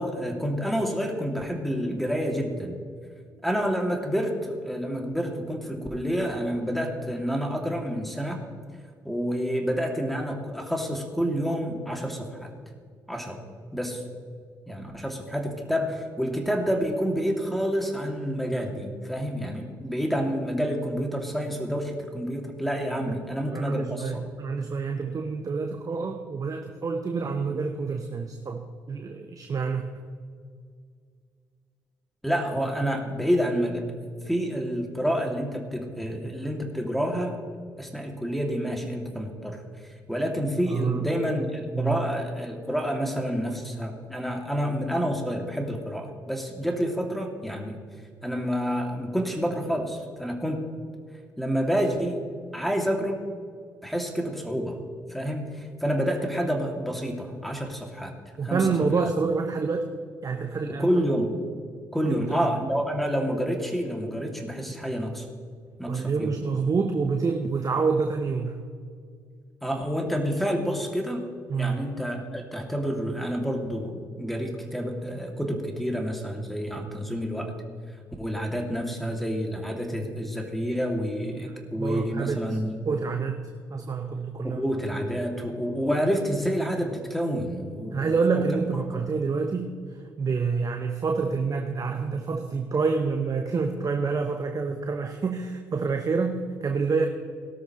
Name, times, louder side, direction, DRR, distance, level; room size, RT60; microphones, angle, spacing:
voice 1, 0.0-2.8 3.4-8.4 9.0-12.5 13.1-13.4 13.7-14.0 14.7-24.2 32.2-33.9 34.3-37.4 37.8-39.6 40.1-47.8 48.2-50.6 51.4-52.2 52.5-53.2 53.8-54.8 55.1-58.1 58.4-58.7 60.7-61.4 61.9-65.3 65.8-66.4 69.6-71.3 71.6-77.5 78.2-82.8 84.4-88.4 88.9-89.0, equal, ahead, 2 dB, 2.6 m, -28 dB
voice 2, 23.5-29.9 40.7-41.1 41.7-42.0 58.4-59.9 60.2-60.9 62.0-62.5 65.9-68.6 71.5-71.8 81.3-82.6 82.9-83.4 83.7-84.6 87.9-97.1, right 4 dB, 40° right, 5 dB, 1.0 m, -27 dB
18.0 x 13.0 x 3.2 m, 2.1 s
hypercardioid pair, 45°, 9 cm